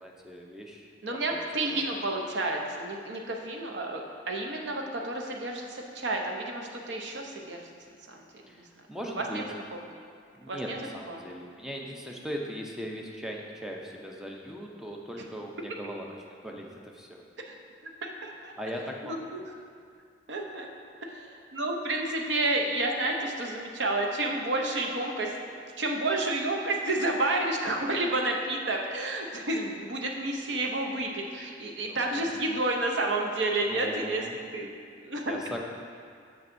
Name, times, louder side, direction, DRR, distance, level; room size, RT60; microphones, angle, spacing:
voice 1, 0.0-0.9 1.3-1.8 8.5-8.6 8.9-9.5 10.3-16.1 16.4-17.2 18.6-19.4 31.8-32.3 33.7-34.3 35.3-35.6, equal, 5° right, 0 dB, 0.5 m, -39 dB
voice 2, 1.0-7.6 8.1-8.2 8.5-8.7 9.2-9.4 9.7-9.8 10.5-10.8 11.1-11.2 17.5-17.6 18.0-18.5 19.0-19.4 20.3-20.7 21.1-25.3 25.8-35.3, right 2 dB, 75° right, 1 dB, 0.7 m, -30 dB
7.1 x 6.1 x 2.6 m, 2.2 s
head